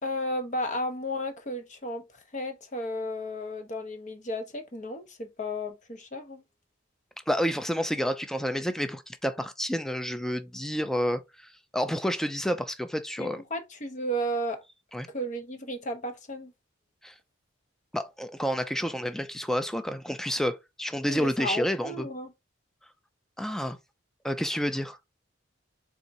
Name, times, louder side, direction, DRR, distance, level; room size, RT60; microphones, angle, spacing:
voice 1, 0.0-6.4 13.2-14.6 15.1-16.5 21.0-22.3, equal, 40° left, 0.8 m, -33 dB
voice 2, 7.3-13.4 14.9-15.1 17.0-17.1 17.9-22.1 23.4-23.8 24.2-25.0, equal, ahead, 0.4 m, -29 dB
4.2 x 3.6 x 2.6 m
head